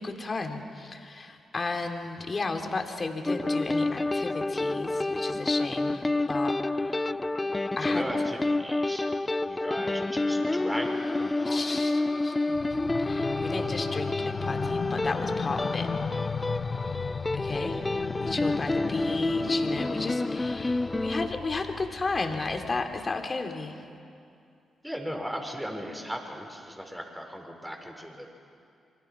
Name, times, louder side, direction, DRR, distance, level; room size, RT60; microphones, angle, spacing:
voice 1, 0.0-7.1 7.8-8.0 11.4-12.6 13.0-15.9 17.3-17.8 18.2-23.8, left 3 dB, 40° left, 4 dB, 3.1 m, -34 dB
sound 1, 3.3-21.3, left 2 dB, 25° left, 0.7 m, -29 dB
voice 2, 6.8-7.2 7.8-11.9 24.8-28.3, equal, 5° right, 2 dB, 5.9 m, -38 dB
sound 2, 12.5-23.1, left 6 dB, 60° left, 1.1 m, -36 dB
27.5 x 24.5 x 6.2 m, 2.5 s
hypercardioid pair, 45°, 0 cm